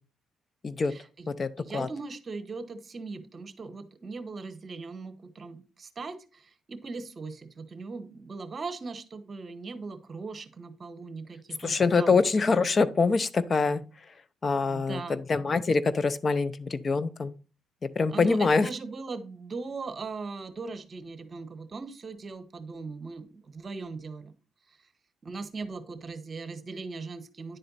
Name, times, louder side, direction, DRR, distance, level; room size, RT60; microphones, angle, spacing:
voice 1, 0.8-1.3 1.6-12.2 14.7-15.2 18.1-24.3 24.7-24.8 25.2-27.6, right 4 dB, 40° right, 10 dB, 1.1 m, -39 dB
voice 2, 1.4-1.9 11.6-13.8 14.4-17.3 18.0-18.7, left 4 dB, 35° left, 14 dB, 0.6 m, -25 dB
10.0 x 4.3 x 4.0 m, 0.34 s
cardioid pair, 90°, 0 cm